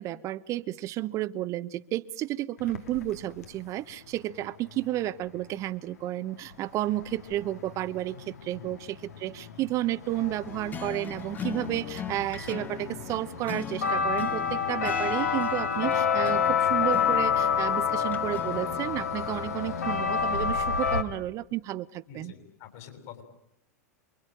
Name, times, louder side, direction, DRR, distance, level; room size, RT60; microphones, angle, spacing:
voice 1, 0.0-22.3, right 14 dB, 40° right, 11 dB, 1.0 m, -32 dB
sound 1, 2.6-3.5 6.5-6.6 6.8-21.0, left 6 dB, 75° left, 2.4 m, -29 dB
sound 2, 10.5-19.0, left 7 dB, 20° left, 1.3 m, -41 dB
voice 2, 22.1-23.2, left 8 dB, 55° left, 6 dB, 7.7 m, -47 dB
28.0 x 23.0 x 9.0 m, 0.85 s
figure-of-eight pair, 95°, 9 cm